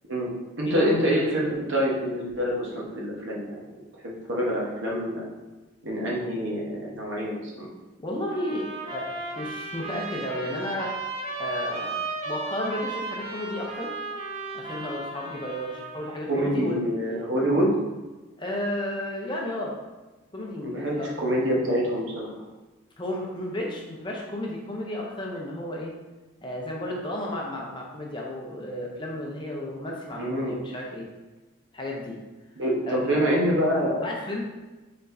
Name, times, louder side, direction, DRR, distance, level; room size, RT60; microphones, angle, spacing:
voice 1, 0.6-3.6 4.0-5.3 5.8-7.7 16.3-17.7 20.6-22.3 30.2-30.5 32.6-34.1, equal, 65° right, -3 dB, 1.0 m, -26 dB
voice 2, 8.0-10.9 11.4-13.9 14.5-16.8 18.4-19.7 20.3-21.1 21.5-21.9 23.0-25.9 26.4-31.1 31.7-32.2 32.9-33.5 34.0-34.4, left 1 dB, 25° left, -2 dB, 0.6 m, -33 dB
sound 1, 8.3-16.1, right 3 dB, 30° right, 0.7 m, -35 dB
4.3 x 4.2 x 2.6 m, 1.2 s
head